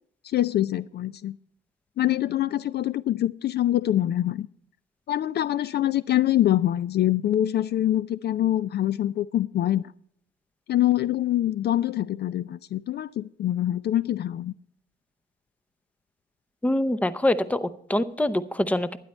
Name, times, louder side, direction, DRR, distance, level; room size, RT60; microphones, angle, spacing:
voice 1, 0.2-1.4 2.0-4.5 5.1-9.8 10.7-14.5, left 12 dB, 55° left, 0.4 m, -24 dB
voice 2, 16.6-19.0, left 1 dB, 5° left, 0.7 m, -24 dB
12.0 x 10.0 x 4.3 m
cardioid pair, 90°, 20 cm